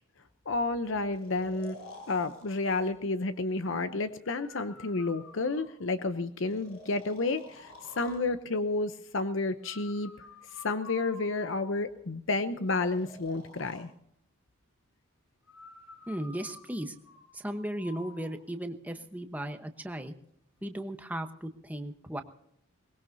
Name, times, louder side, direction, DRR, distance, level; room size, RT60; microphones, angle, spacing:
voice 1, 0.5-1.8 2.1-10.1 10.6-13.9, left 3 dB, 60° left, 10 dB, 0.7 m, -31 dB
Breathing, 1.1-2.9 4.2-5.9 6.5-8.3 9.6-11.9 12.7-13.8 15.5-18.3, left 3 dB, 85° left, 6.4 m, -51 dB
voice 2, 16.1-16.9 17.3-20.1 20.6-22.2, right 1 dB, 5° right, 6 dB, 1.0 m, -36 dB
22.5 x 20.5 x 2.7 m, 0.75 s
head